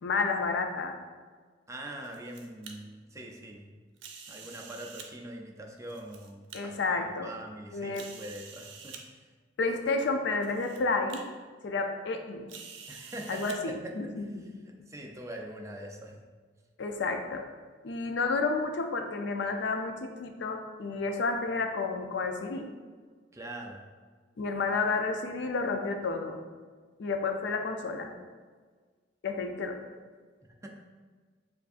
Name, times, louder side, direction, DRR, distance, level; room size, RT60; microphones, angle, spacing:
voice 1, 0.0-1.0 6.5-7.3 7.7-8.1 9.6-11.2 11.6-12.4 13.3-14.4 16.8-17.4 17.8-22.7 24.4-26.4 27.0-28.1 29.2-29.8, left 3 dB, 65° left, 5 dB, 0.4 m, -31 dB
voice 2, 1.7-3.7 4.3-9.3 12.9-16.3 23.3-23.9 30.4-30.7, right 1 dB, 15° right, 1 dB, 0.4 m, -43 dB
sound 1, 1.8-2.7 4.0-5.1 5.8-6.6 7.2-7.3 7.9-9.0 9.9-10.0 10.4-10.8 11.1-11.2 12.5-13.6, right 6 dB, 80° right, 0.5 m, -47 dB
6.7 x 2.6 x 2.5 m, 1.5 s
head